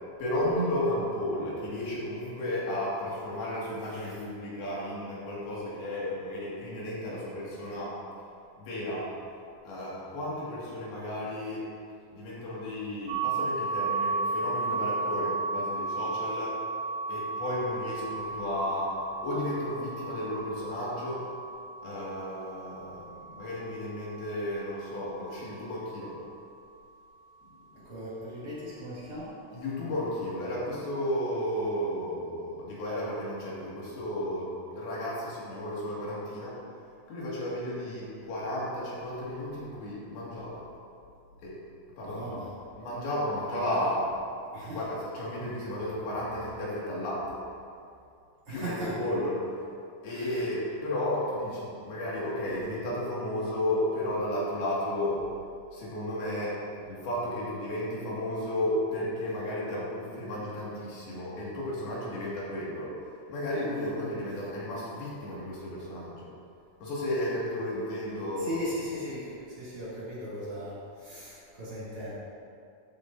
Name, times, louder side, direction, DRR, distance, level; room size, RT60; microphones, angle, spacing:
voice 1, 0.2-8.0 8.6-9.1 9.6-11.7 12.1-16.6 17.1-21.3 21.8-26.2 27.7-27.9 29.5-36.6 37.1-40.6 41.4-41.6 42.0-42.4 42.8-44.1 44.7-47.4 48.5-49.7 50.0-55.3 55.7-66.3 66.8-68.6, left 1 dB, 85° left, -7 dB, 4.1 m, -33 dB
sound 1, 13.1-24.8, right 3 dB, 75° right, 1.8 m, -34 dB
voice 2, 27.8-29.3 42.0-42.5 44.5-44.8 48.5-49.0 50.1-50.2 64.1-64.2 68.4-72.2, equal, 40° right, -10 dB, 2.8 m, -38 dB
13.0 x 8.5 x 2.7 m, 2.4 s
omnidirectional pair, 4.3 m